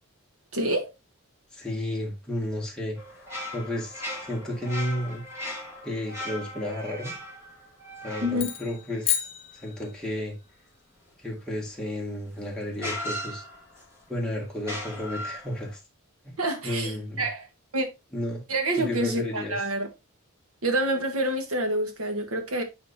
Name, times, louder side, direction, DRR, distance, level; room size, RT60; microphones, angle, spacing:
voice 1, 0.5-0.9 8.2-8.5 16.4-17.5 17.7-17.9 18.5-19.9 20.6-22.6, right 1 dB, 70° right, 1.6 m, -27 dB
voice 2, 1.5-5.2 5.8-7.1 8.0-9.3 9.5-10.3 11.2-13.4 14.1-15.8 16.2-16.3 16.6-17.3 18.1-18.4 18.8-19.6, left 1 dB, 5° left, 2.0 m, -32 dB
sound 1, 3.0-9.6 11.9-12.0 12.8-14.0 14.6-15.7, left 1 dB, 10° right, 2.1 m, -38 dB
sound 2, 8.3-10.3, left 10 dB, 25° left, 0.9 m, -31 dB
8.9 x 4.2 x 2.7 m
head